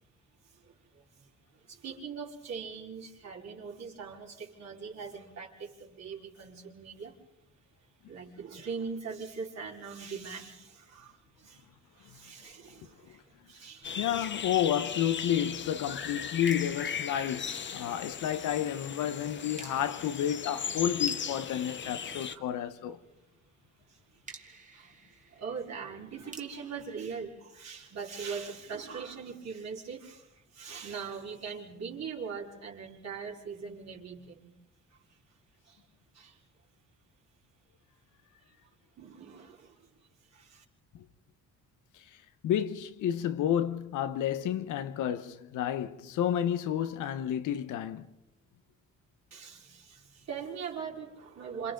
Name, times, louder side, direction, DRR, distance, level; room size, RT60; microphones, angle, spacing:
voice 1, 0.5-1.3 1.7-7.2 8.1-14.2 17.8-18.0 19.6-19.7 22.3-22.4 23.9-24.0 24.3-24.4 24.7-24.9 25.3-34.5 34.9-35.0 35.6-35.8 36.1-36.4 39.0-39.9 40.3-40.6 49.3-51.7, right 6 dB, 60° right, 4.5 m, -41 dB
sound 1, 13.8-22.4, left 7 dB, 40° left, 0.9 m, -37 dB
voice 2, 14.0-23.0 41.9-42.0 42.4-48.1, left 10 dB, 80° left, 1.1 m, -31 dB
sound 2, 16.5-18.2 19.6-22.9 24.3-28.2, right 3 dB, 25° right, 2.3 m, -54 dB
27.5 x 27.0 x 3.9 m
cardioid pair, 90°, 30 cm